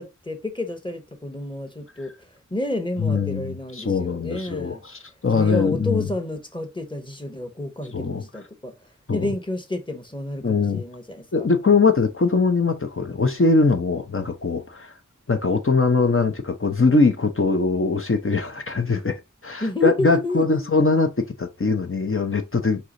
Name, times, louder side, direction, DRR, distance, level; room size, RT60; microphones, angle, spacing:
voice 1, 0.0-2.1 2.5-4.8 5.3-8.7 9.1-11.5 19.6-20.6, left 2 dB, 15° left, 1.1 m, -30 dB
voice 2, 3.0-6.1 7.9-8.2 9.1-9.3 10.4-10.8 11.3-14.9 15.3-19.1 19.4-22.9, left 4 dB, 45° left, 0.8 m, -21 dB
4.8 x 2.9 x 3.8 m
wide cardioid pair, 50°, 30 cm